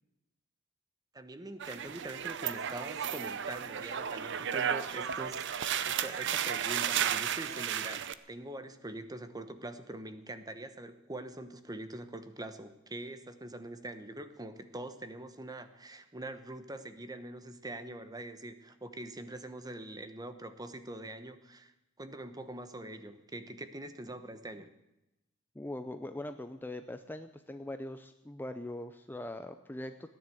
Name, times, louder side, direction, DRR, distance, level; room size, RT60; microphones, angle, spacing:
voice 1, 1.1-5.4 5.9-21.7 22.0-24.7, right 1 dB, 20° right, 10 dB, 1.0 m, -44 dB
sound 1, 1.6-8.1, right 8 dB, 60° right, 0.7 m, -33 dB
voice 2, 25.5-30.1, left 1 dB, 10° left, 8 dB, 0.5 m, -41 dB
15.5 x 10.5 x 7.7 m, 0.93 s
head